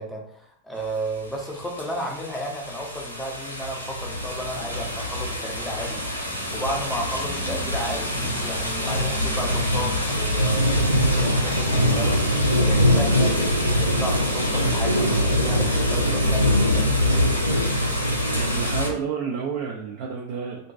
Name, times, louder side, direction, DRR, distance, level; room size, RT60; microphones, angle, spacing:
voice 1, 0.0-6.0 6.5-10.7 11.0-17.0, equal, 5° left, 0 dB, 0.5 m, -33 dB
sound 1, 1.8-18.9, equal, 90° left, 0.4 m, -23 dB
sound 2, 4.1-16.7, left 2 dB, 35° left, 0.9 m, -40 dB
voice 2, 18.3-20.7, right 6 dB, 50° right, -1 dB, 0.3 m, -30 dB
2.5 x 2.2 x 2.3 m, 0.66 s
figure-of-eight pair, 90°, 0 cm